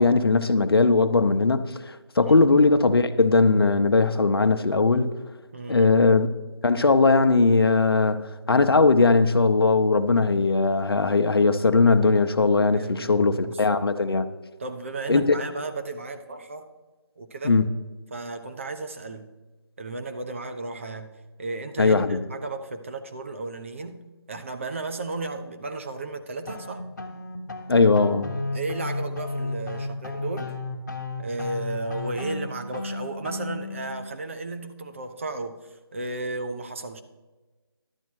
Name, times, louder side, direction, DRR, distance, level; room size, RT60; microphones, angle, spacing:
voice 1, 0.0-5.1 5.7-6.3 6.6-14.3 15.1-15.4 17.4-17.7 21.8-22.2 27.7-28.4, left 3 dB, 65° left, 0.8 m, -19 dB
voice 2, 5.5-5.9 12.7-13.7 14.6-16.7 17.2-17.6 18.1-19.3 19.8-21.1 21.4-24.0 24.3-26.8 28.5-30.5 31.2-37.0, right 2 dB, 30° right, 0.7 m, -34 dB
sound 1, 26.5-33.9, left 3 dB, 40° left, 1.2 m, -33 dB
11.5 x 8.4 x 4.6 m
figure-of-eight pair, 165°, 13 cm